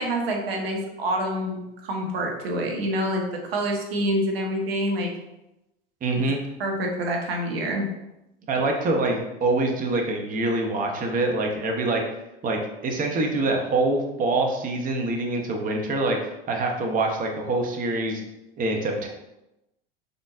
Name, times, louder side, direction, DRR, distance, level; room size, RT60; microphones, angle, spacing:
voice 1, 0.0-5.1 6.6-7.9, equal, 80° right, 1 dB, 1.1 m, -27 dB
voice 2, 6.0-6.4 8.5-12.0 12.4-18.2 18.6-19.1, right 2 dB, 30° right, 2 dB, 0.8 m, -25 dB
5.2 x 4.0 x 2.5 m, 0.92 s
hypercardioid pair, 95°, 29 cm